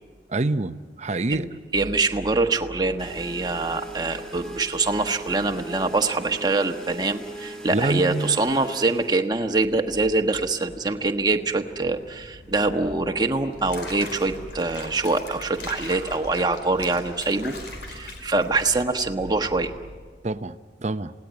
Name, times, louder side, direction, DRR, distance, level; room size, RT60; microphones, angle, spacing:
voice 1, 0.3-1.5 7.7-8.4 20.2-21.1, right 2 dB, 40° right, 12 dB, 0.7 m, -26 dB
voice 2, 1.7-17.6 17.9-19.7, right 3 dB, 25° right, 5 dB, 1.3 m, -24 dB
sound 1, 3.0-9.1, right 1 dB, 5° left, 2.6 m, -39 dB
Accelerating revving vroom, 9.5-20.0, equal, 85° left, 4.9 m, -46 dB
Water / Bathtub (filling or washing), 13.5-19.0, left 3 dB, 70° left, 4.9 m, -40 dB
27.5 x 18.0 x 9.5 m, 1.6 s
head